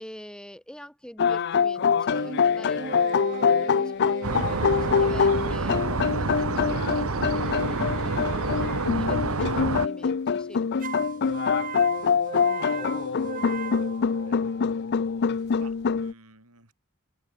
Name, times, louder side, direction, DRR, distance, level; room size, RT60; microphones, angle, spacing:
voice 1, 0.0-10.7, equal, 5° left, 6.4 m, -45 dB
sound 1, 1.2-16.1, left 6 dB, 50° left, 0.5 m, -25 dB
sound 2, 2.1-7.5 10.8-14.7, right 5 dB, 40° right, 1.1 m, -37 dB
sound 3, 4.2-9.9, right 3 dB, 70° right, 1.3 m, -28 dB
voice 2, 14.2-14.6 14.8-16.7, right 3 dB, 90° right, 7.4 m, -54 dB
open air
head